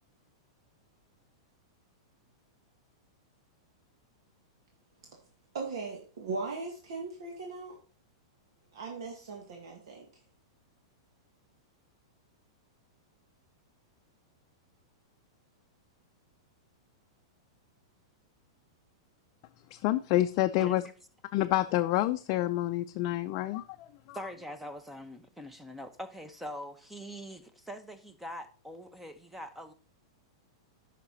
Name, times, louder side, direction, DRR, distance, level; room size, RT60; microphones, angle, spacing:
voice 1, 5.5-7.8 8.7-10.1, right 3 dB, 75° right, 2.0 m, -38 dB
voice 2, 19.7-20.8 21.3-23.9, left 15 dB, 40° left, 0.5 m, -28 dB
voice 3, 24.1-29.7, equal, 5° right, 0.9 m, -43 dB
9.8 x 5.8 x 4.1 m
hypercardioid pair, 145°, 3 cm